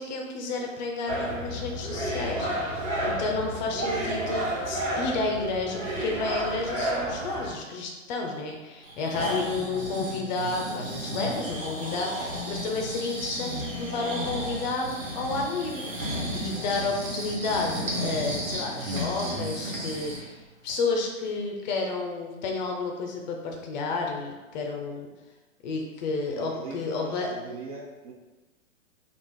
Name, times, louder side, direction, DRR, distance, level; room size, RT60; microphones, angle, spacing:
voice 1, 0.0-25.1 25.6-27.3, left 3 dB, 35° left, 1 dB, 0.5 m, -31 dB
sound 1, 1.1-7.5, right 1 dB, 60° right, 1.5 m, -31 dB
Breathing, 8.8-20.3 20.7-20.8, equal, 80° right, 1.3 m, -33 dB
voice 2, 26.3-28.1, right 3 dB, 30° right, -1 dB, 0.4 m, -40 dB
3.4 x 2.5 x 3.5 m, 1.2 s
hypercardioid pair, 120°, 40 cm